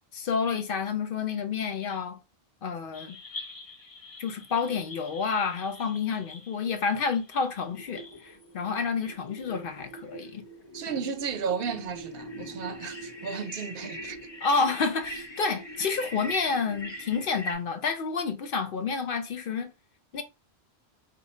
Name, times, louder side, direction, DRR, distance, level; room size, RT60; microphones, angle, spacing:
voice 1, 0.1-2.2 2.6-3.2 4.2-10.4 10.9-11.0 14.4-19.7 20.1-20.2, left 5 dB, 65° left, 0.7 m, -29 dB
sound 1, 2.9-17.5, equal, 30° left, 0.7 m, -43 dB
voice 2, 10.7-14.2, right 6 dB, 65° right, 0.8 m, -33 dB
4.3 x 2.3 x 4.2 m
omnidirectional pair, 1.1 m